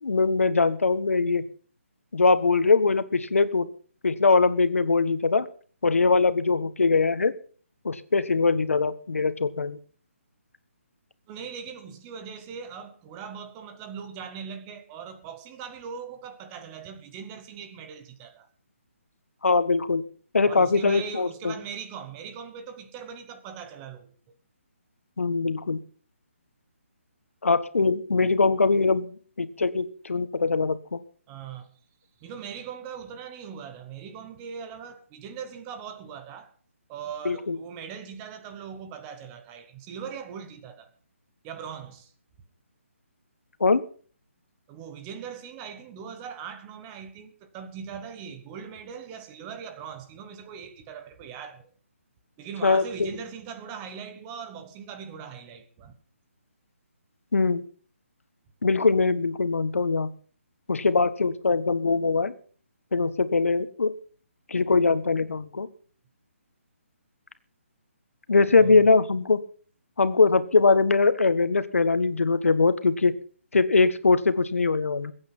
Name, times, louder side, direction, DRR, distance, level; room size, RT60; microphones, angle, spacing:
voice 1, 0.0-1.4 2.1-3.7 4.0-5.5 5.8-7.3 7.8-9.8 19.4-20.0 20.3-21.5 25.2-25.8 27.4-29.1 29.4-31.0 37.2-37.6 43.6-43.8 52.6-53.1 57.3-57.6 58.6-60.1 60.7-62.3 62.9-63.9 64.5-65.7 68.3-69.4 70.0-73.1 73.5-75.1, left 4 dB, 85° left, 1.6 m, -22 dB
voice 2, 11.3-18.5 20.5-24.4 31.3-31.7 32.2-36.5 36.9-40.9 41.4-42.1 44.7-51.7 52.4-55.9 68.5-68.9, right 7 dB, 10° right, 0.9 m, -40 dB
21.5 x 8.9 x 5.6 m
hypercardioid pair, 175°, 7 cm